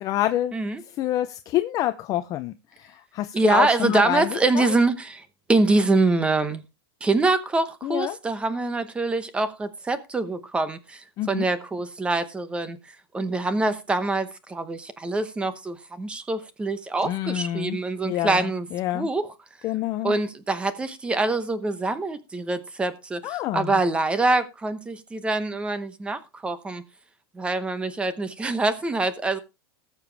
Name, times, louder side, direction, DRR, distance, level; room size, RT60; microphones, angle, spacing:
voice 1, 0.0-0.5 1.0-4.3 4.5-4.7 7.8-8.2 11.2-11.4 17.0-19.1 19.6-20.2 23.2-23.8, left 13 dB, 25° left, 0.5 m, -27 dB
voice 2, 0.5-0.8 3.3-6.6 7.0-12.8 13.1-18.7 18.9-19.3 20.0-26.8 27.3-29.4, right 3 dB, 10° right, 0.8 m, -25 dB
19.0 x 6.9 x 3.3 m
supercardioid pair, 165°, 13 cm